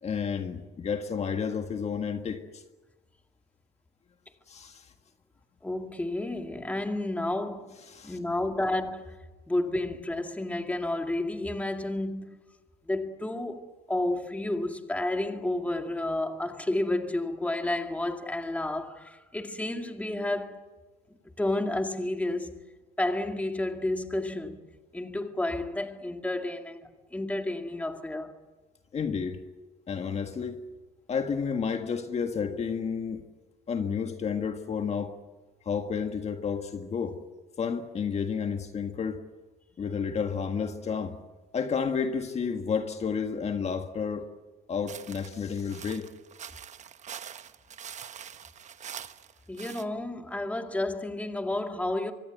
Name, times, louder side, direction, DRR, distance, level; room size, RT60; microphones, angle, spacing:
voice 1, 0.0-2.6 4.5-4.9 7.9-8.2 28.9-29.4 29.9-30.6 31.1-33.2 33.7-35.2 35.6-37.2 37.6-39.2 39.8-41.2 41.5-44.2 44.7-46.1, left 6 dB, 40° left, 1.7 m, -31 dB
voice 2, 5.6-7.8 8.0-9.2 9.5-12.4 12.9-20.6 21.4-22.6 23.0-24.6 24.9-28.3 49.5-52.1, left 1 dB, 10° left, 2.1 m, -31 dB
sound 1, 44.9-49.8, right 8 dB, 45° right, 1.1 m, -44 dB
25.0 x 22.5 x 8.1 m
cardioid pair, 110°, 17 cm